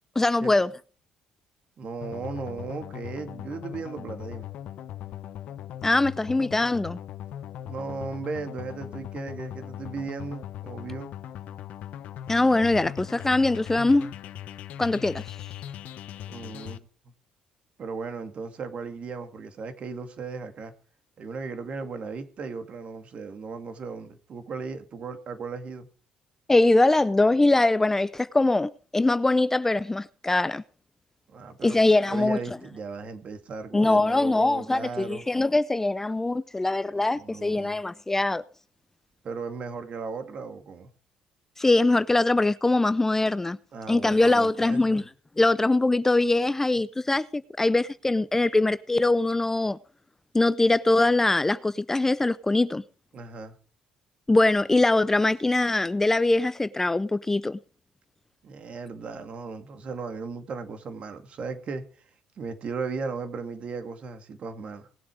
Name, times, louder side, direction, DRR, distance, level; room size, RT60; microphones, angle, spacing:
voice 1, 0.2-0.7 5.8-7.0 12.3-14.1 14.8-15.2 26.5-30.6 31.6-32.4 33.7-38.4 41.6-43.6 43.9-45.0 45.4-49.8 50.3-52.8 54.3-57.6, left 2 dB, 15° left, 0.5 m, -22 dB
voice 2, 1.8-4.5 7.6-11.1 16.3-16.8 17.8-20.7 21.2-25.9 31.3-31.8 32.1-35.2 36.9-37.8 39.2-40.9 43.7-45.0 53.1-53.6 58.4-62.1 62.4-64.9, right 4 dB, 50° right, 2.2 m, -36 dB
sound 1, 2.0-16.8, left 11 dB, 70° left, 0.9 m, -39 dB
19.5 x 7.7 x 5.0 m
supercardioid pair, 80°, 3 cm